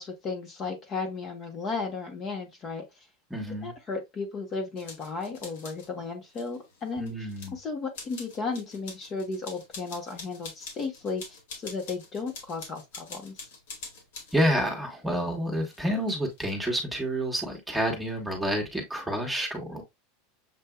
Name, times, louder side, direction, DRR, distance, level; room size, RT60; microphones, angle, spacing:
voice 1, 0.0-3.1 3.6-13.5, left 4 dB, 30° left, 1.2 m, -35 dB
voice 2, 3.3-3.7 7.0-7.5 14.3-19.8, equal, 5° right, 1.3 m, -29 dB
sound 1, 4.8-5.9 6.3-7.5 7.9-14.4 15.6-16.5, left 4 dB, 80° left, 1.9 m, -45 dB
6.9 x 2.6 x 2.3 m
supercardioid pair, 140°, 0 cm